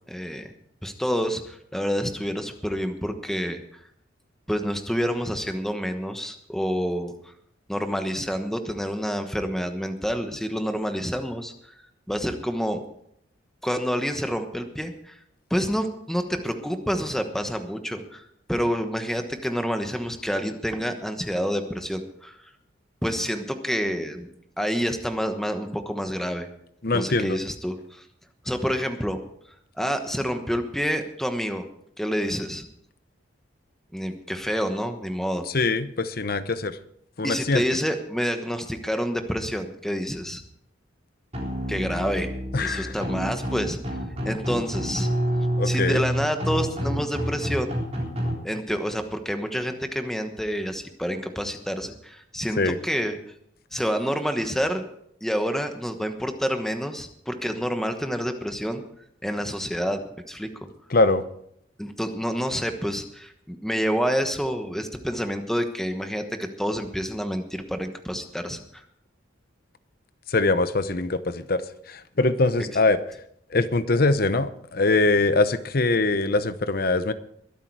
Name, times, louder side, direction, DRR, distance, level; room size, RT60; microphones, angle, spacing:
voice 1, 0.1-0.5 0.8-3.6 4.5-7.3 7.7-11.8 12.1-12.8 13.6-15.2 15.5-22.4 23.0-24.3 24.6-26.5 26.9-28.1 28.4-29.2 29.8-31.7 32.0-32.6 33.9-35.5 37.2-40.4 41.7-42.3 42.6-43.8 44.2-45.1 45.6-47.8 48.4-53.2 53.7-54.9 55.2-58.8 59.2-60.0 60.3-60.7 61.8-68.8, equal, ahead, 7 dB, 1.1 m, -28 dB
voice 2, 26.8-27.4 35.5-36.8 37.2-37.6 42.5-43.0 45.6-46.0 52.6-52.8 60.9-61.2 70.3-73.0 73.5-77.1, left 3 dB, 50° left, 13 dB, 0.8 m, -23 dB
sound 1, 41.3-48.3, equal, 35° right, 3.7 m, -28 dB
22.5 x 8.4 x 4.7 m, 0.72 s
head